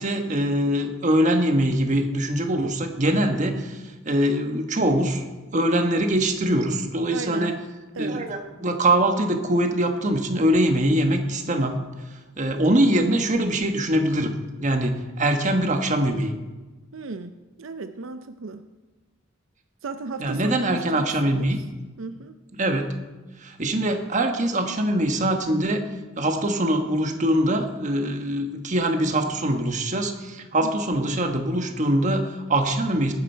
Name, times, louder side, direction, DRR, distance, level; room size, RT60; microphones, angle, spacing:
voice 1, 0.0-5.2 5.5-7.5 8.0-11.8 12.4-14.3 14.6-16.3 20.2-21.6 22.6-22.9 23.4-25.8 26.2-33.1, right 1 dB, 40° right, 5 dB, 1.3 m, -23 dB
voice 2, 7.1-7.5 7.9-8.3 16.9-18.6 19.8-21.5 22.0-22.4 30.6-30.7, right 3 dB, 80° right, 9 dB, 0.6 m, -35 dB
18.5 x 9.9 x 4.6 m, 1.2 s
head